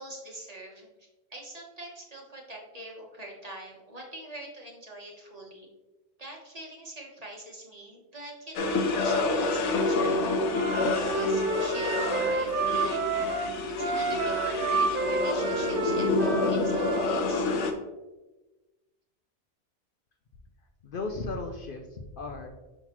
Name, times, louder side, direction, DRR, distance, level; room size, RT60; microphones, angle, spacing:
voice 1, 0.0-5.7 6.2-10.3 10.8-13.3 13.7-17.5, right 1 dB, 35° right, -1 dB, 1.1 m, -44 dB
sound 1, 8.5-17.7, left 2 dB, 85° left, 1.0 m, -28 dB
Wind instrument woodwind instrument, 10.5-17.1, right 3 dB, 55° right, 0.8 m, -30 dB
voice 2, 20.8-22.5, left 3 dB, 60° left, 3 dB, 0.7 m, -35 dB
5.8 x 5.4 x 2.9 m, 1.1 s
omnidirectional pair, 1.2 m